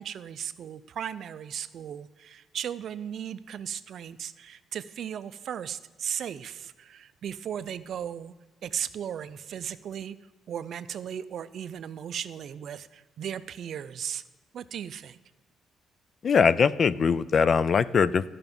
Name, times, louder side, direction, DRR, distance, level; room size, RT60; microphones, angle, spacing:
voice 1, 0.0-8.3 8.6-10.2 10.5-14.2 14.5-15.2, right 9 dB, 60° right, 14 dB, 0.4 m, -36 dB
voice 2, 16.2-18.2, left 6 dB, 40° left, 17 dB, 0.3 m, -21 dB
13.0 x 5.8 x 5.3 m, 1.2 s
cardioid pair, 125°, 0 cm